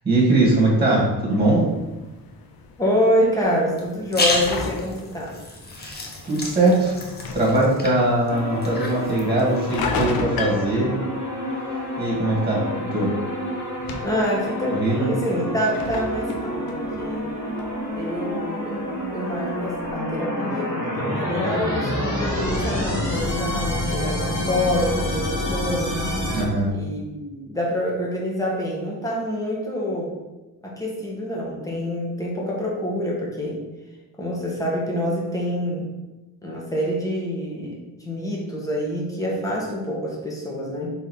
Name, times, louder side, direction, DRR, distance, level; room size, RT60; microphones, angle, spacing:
voice 1, 0.0-1.7 5.8-7.0 7.3-10.9 12.0-12.6 12.9-13.1 14.7-15.1 26.3-26.7, right 2 dB, 15° right, -4 dB, 2.0 m, -21 dB
sound 1, 1.3-19.9, left 4 dB, 80° left, 0.9 m, -37 dB
voice 2, 2.8-5.3 14.0-17.3 17.9-18.8 19.1-25.9 26.7-30.2 30.6-33.6 34.2-35.9 36.4-40.9, equal, 10° left, -3 dB, 1.4 m, -26 dB
sound 2, 3.8-9.9, left 2 dB, 30° left, 0.9 m, -31 dB
sound 3, 8.3-26.4, left 1 dB, 55° left, 1.8 m, -28 dB
5.6 x 4.0 x 4.4 m, 1.1 s
cardioid pair, 145°, 36 cm